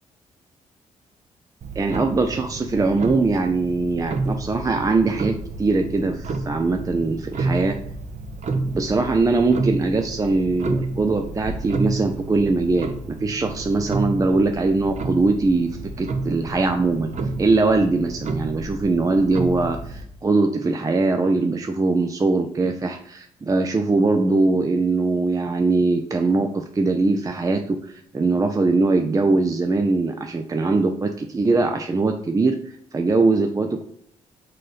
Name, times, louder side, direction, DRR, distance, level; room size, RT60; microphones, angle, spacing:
Clock, 1.6-20.0, right 3 dB, 45° right, 0.8 m, -30 dB
voice 1, 1.8-7.8 8.7-17.1 17.4-33.8, right 3 dB, 20° right, 5 dB, 0.5 m, -21 dB
6.4 x 3.7 x 3.9 m, 0.68 s
figure-of-eight pair, 40°, 17 cm